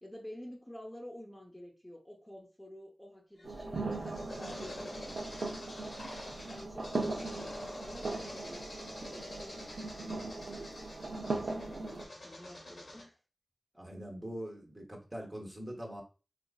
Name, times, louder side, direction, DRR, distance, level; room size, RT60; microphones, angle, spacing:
voice 1, 0.0-3.9 4.3-5.8 6.5-13.2, left 1 dB, 10° left, -1 dB, 0.8 m, -50 dB
sound 1, 3.4-13.0, left 1 dB, 75° left, 1.1 m, -47 dB
sound 2, 3.4-12.0, right 3 dB, 90° right, 0.6 m, -39 dB
voice 2, 13.7-16.0, equal, 25° right, -1 dB, 0.9 m, -43 dB
4.2 x 2.5 x 2.3 m, 0.34 s
wide cardioid pair, 85°, 0 cm